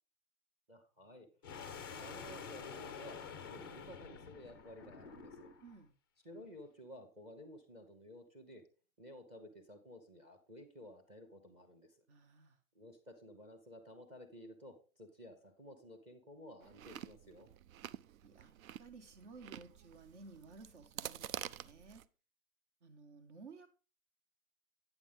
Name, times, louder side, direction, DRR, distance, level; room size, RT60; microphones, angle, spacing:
voice 1, 0.7-1.3 1.9-5.5 6.2-8.6 9.0-12.0 12.7-17.5, equal, 15° right, 7 dB, 0.9 m, -54 dB
sound 1, 1.4-5.7, left 6 dB, 20° left, 0.3 m, -48 dB
voice 2, 5.6-5.9 12.1-12.6 18.2-18.5 18.8-22.0 22.8-23.7, right 4 dB, 60° right, 8 dB, 1.7 m, -56 dB
Chewing mastication, 16.6-22.1, right 11 dB, 80° right, 0.6 m, -48 dB
8.9 x 7.1 x 3.6 m, 0.34 s
hypercardioid pair, 155°, 40 cm